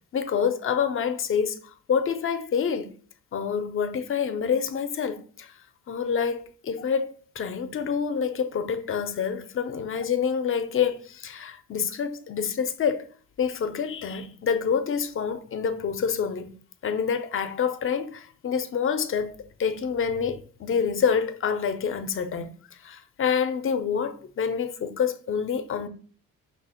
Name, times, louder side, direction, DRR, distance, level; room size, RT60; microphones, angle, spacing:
voice 1, 0.1-2.9 3.3-5.5 5.9-13.1 13.4-16.6 16.8-22.5 22.8-25.9, left 7 dB, 45° left, 0.6 m, -27 dB
5.5 x 2.0 x 4.2 m
cardioid pair, 90°, 30 cm